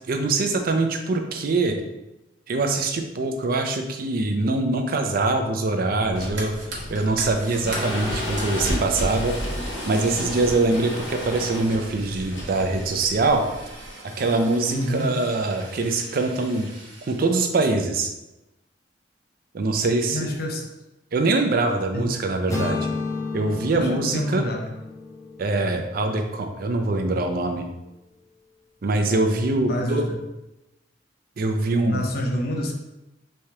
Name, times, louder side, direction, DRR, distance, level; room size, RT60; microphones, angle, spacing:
voice 1, 0.1-1.8 2.5-6.5 6.9-13.4 14.2-16.7 17.1-18.1 19.5-20.3 21.1-22.9 23.3-24.4 25.4-27.7 28.8-30.0 31.4-32.0, right 2 dB, 55° right, 5 dB, 0.4 m, -23 dB
sound 1, 6.0-13.9, left 1 dB, 90° left, 0.8 m, -31 dB
Fire, 6.0-17.5, right 2 dB, 70° right, 0.8 m, -41 dB
voice 2, 14.7-15.2 20.1-20.7 21.9-22.1 23.7-24.7 29.7-30.2 31.8-32.7, left 1 dB, 55° left, 2 dB, 0.6 m, -27 dB
sound 2, 22.5-26.5, left 3 dB, 20° left, 0.6 m, -32 dB
3.4 x 3.2 x 2.8 m, 0.96 s
head